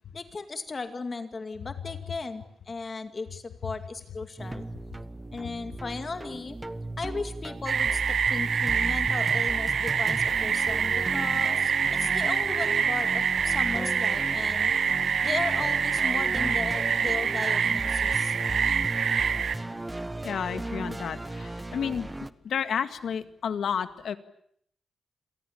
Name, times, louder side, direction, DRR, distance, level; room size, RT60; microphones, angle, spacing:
voice 1, 0.1-4.6 5.3-6.6 7.0-14.7 15.2-18.4, left 4 dB, 35° left, 8 dB, 2.2 m, -36 dB
sound 1, 4.4-22.3, right 2 dB, 15° right, 1.1 m, -36 dB
sound 2, 7.7-19.5, right 7 dB, 60° right, 1.2 m, -26 dB
voice 2, 20.2-22.1 22.4-24.2, left 7 dB, 80° left, 10 dB, 2.0 m, -31 dB
29.0 x 23.0 x 8.6 m, 0.68 s
wide cardioid pair, 135°, 0 cm